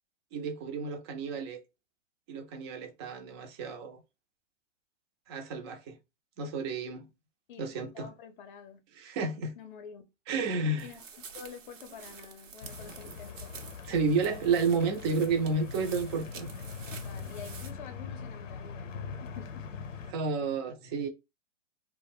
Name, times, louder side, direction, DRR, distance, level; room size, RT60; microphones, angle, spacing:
voice 1, 0.3-1.6 2.3-4.0 5.3-6.0 6.4-7.1 7.6-8.1 9.0-9.6 10.3-10.9 13.8-16.5 20.1-21.1, right 4 dB, 25° right, 0.4 m, -31 dB
voice 2, 7.5-8.8 9.6-10.0 10.8-11.0 11.3-13.6 14.0-14.3 16.9-19.7, left 7 dB, 40° left, 0.6 m, -48 dB
sound 1, 10.8-17.7, right 6 dB, 90° right, 0.7 m, -49 dB
sound 2, 12.6-20.1, left 5 dB, 90° left, 0.7 m, -42 dB
2.3 x 2.1 x 3.4 m
hypercardioid pair, 130°, 37 cm